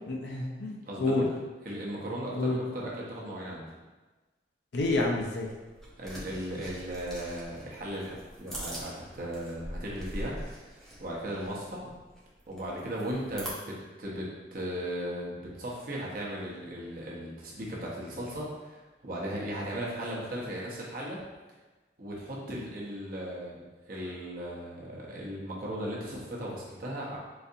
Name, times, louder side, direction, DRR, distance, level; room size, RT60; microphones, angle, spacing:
voice 1, 0.1-1.3 2.4-2.6 4.7-5.5, left 2 dB, 65° left, 0 dB, 0.5 m, -29 dB
voice 2, 0.9-1.2 1.6-3.7 6.0-10.4 11.0-11.9 12.5-21.2 22.0-27.2, equal, 50° right, -4 dB, 0.7 m, -37 dB
sound 1, 4.7-13.5, equal, ahead, 0.5 m, -43 dB
4.0 x 2.5 x 2.6 m, 1.2 s
head